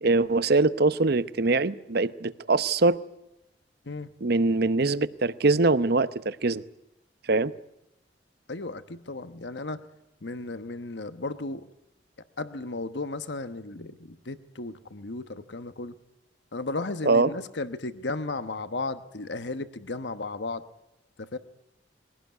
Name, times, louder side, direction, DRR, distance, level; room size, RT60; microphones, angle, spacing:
voice 1, 0.0-3.0 4.2-6.6 7.3-7.5 17.0-17.3, right 3 dB, 60° right, 0.8 m, -23 dB
voice 2, 8.5-9.8 10.2-11.6 12.4-15.9 16.5-20.6 21.2-21.4, left 3 dB, 70° left, 1.1 m, -34 dB
22.5 x 17.5 x 9.3 m
head